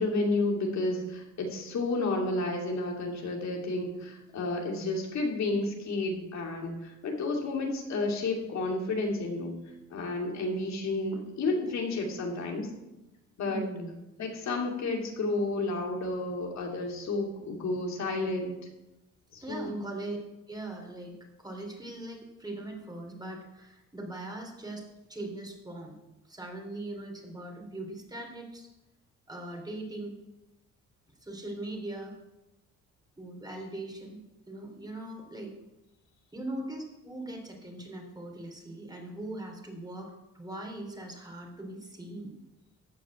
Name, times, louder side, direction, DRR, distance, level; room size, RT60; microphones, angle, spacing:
voice 1, 0.0-9.6 9.9-12.7 13.4-13.6 14.2-18.6 19.3-19.8, left 2 dB, 65° left, 1 dB, 2.8 m, -31 dB
voice 2, 13.4-14.0 19.4-20.2 20.5-26.0 26.2-28.7 29.3-30.1 31.2-32.2 33.2-34.2 34.5-35.5 36.3-42.3, right 1 dB, 15° right, 2 dB, 3.2 m, -40 dB
14.0 x 5.1 x 8.8 m, 0.96 s
cardioid pair, 90°, 30 cm